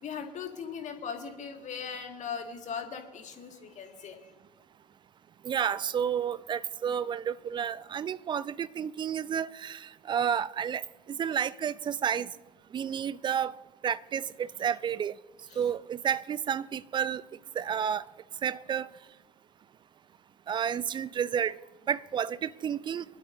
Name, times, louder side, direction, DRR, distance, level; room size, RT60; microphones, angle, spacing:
voice 1, 0.0-4.3 15.5-15.6, left 6 dB, 35° left, 1.9 m, -39 dB
voice 2, 5.4-10.8 11.1-12.3 12.7-13.5 13.8-15.1 15.6-17.2 17.6-18.0 18.4-18.9 20.5-21.6 21.9-23.0, right 8 dB, 20° right, 0.4 m, -31 dB
24.0 x 12.0 x 2.7 m
figure-of-eight pair, 70°, 21 cm